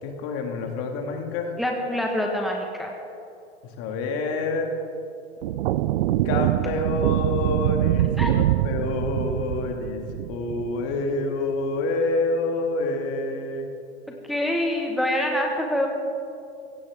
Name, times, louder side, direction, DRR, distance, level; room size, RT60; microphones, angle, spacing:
voice 1, 0.0-1.6 3.6-4.7 6.2-10.0 10.3-13.7, left 3 dB, 40° left, 3 dB, 2.2 m, -27 dB
voice 2, 1.6-2.9 8.2-8.3 14.3-15.9, left 1 dB, ahead, 0 dB, 1.5 m, -25 dB
sound 1, 5.4-11.0, right 14 dB, 60° right, 0.5 m, -24 dB
16.5 x 16.0 x 3.7 m, 2.6 s
hypercardioid pair, 100°, 34 cm